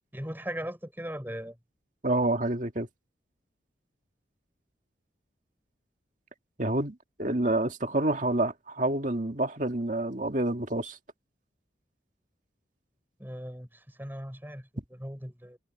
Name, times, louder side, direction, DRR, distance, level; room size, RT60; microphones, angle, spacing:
voice 1, 0.1-1.6 13.2-15.6, equal, 10° right, 5.3 m, -39 dB
voice 2, 2.0-2.9 6.6-11.0, right 2 dB, 45° right, 2.1 m, -28 dB
head